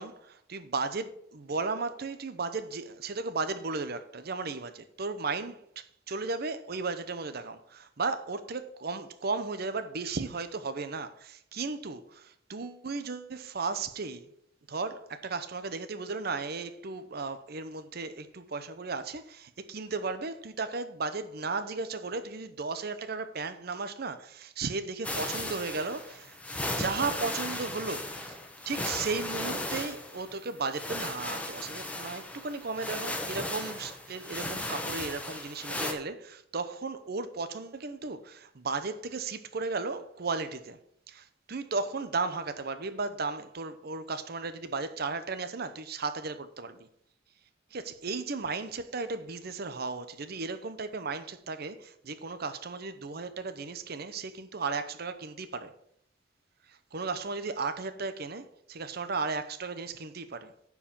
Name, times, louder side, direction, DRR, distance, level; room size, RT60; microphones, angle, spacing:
voice 1, 0.0-14.3 14.7-28.4 28.7-40.8 41.1-46.9 47.7-55.7 56.7-60.5, right 4 dB, 55° right, 0.8 m, -35 dB
sound 1, 25.0-35.9, left 1 dB, 5° left, 1.1 m, -36 dB
9.8 x 4.8 x 7.2 m
head